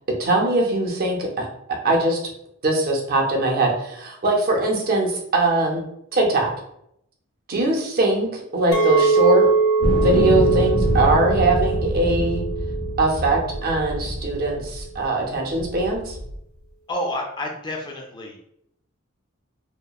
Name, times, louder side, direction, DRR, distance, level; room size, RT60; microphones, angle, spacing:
voice 1, 0.2-2.2 2.6-5.8 6.1-6.5 7.5-9.5 10.0-12.4 13.0-16.2, right 2 dB, 45° right, 1 dB, 0.6 m, -21 dB
Chink clink, 8.7-13.9, right 4 dB, 85° left, 0.6 m, -22 dB
sound 1, 9.8-15.0 15.6-16.4, equal, 90° right, 0.5 m, -25 dB
voice 2, 16.9-18.4, left 1 dB, 20° left, 0 dB, 0.3 m, -29 dB
2.8 x 2.0 x 2.2 m, 0.74 s
head